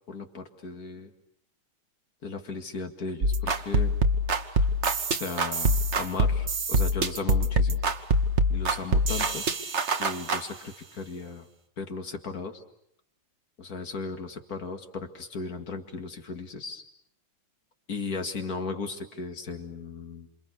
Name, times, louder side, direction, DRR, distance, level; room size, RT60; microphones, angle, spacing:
voice 1, 0.1-1.1 2.2-3.9 5.1-7.8 8.5-9.4 10.0-11.5 11.8-12.6 13.6-16.8 17.9-20.3, left 4 dB, 50° left, 6 dB, 2.4 m, -36 dB
sound 1, 3.2-10.4, right 1 dB, 40° right, 1.4 m, -25 dB
27.5 x 27.5 x 6.8 m, 0.71 s
omnidirectional pair, 2.2 m